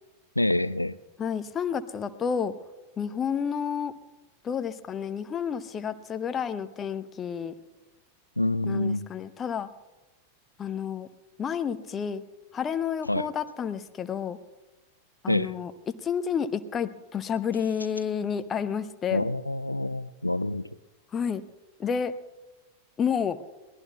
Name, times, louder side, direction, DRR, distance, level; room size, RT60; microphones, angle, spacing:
voice 1, 0.4-1.0 8.4-9.1 13.1-13.3 15.3-15.5 19.1-20.6, left 1 dB, 85° left, 18 dB, 0.4 m, -27 dB
voice 2, 1.2-2.5 3.0-3.9 4.4-7.5 8.7-9.7 10.6-11.1 11.4-12.2 12.5-14.4 15.2-19.3 21.1-21.4 21.8-22.1 23.0-23.4, left 7 dB, 25° left, 12 dB, 0.6 m, -30 dB
23.0 x 18.0 x 2.3 m, 1.1 s
figure-of-eight pair, 90°, 0 cm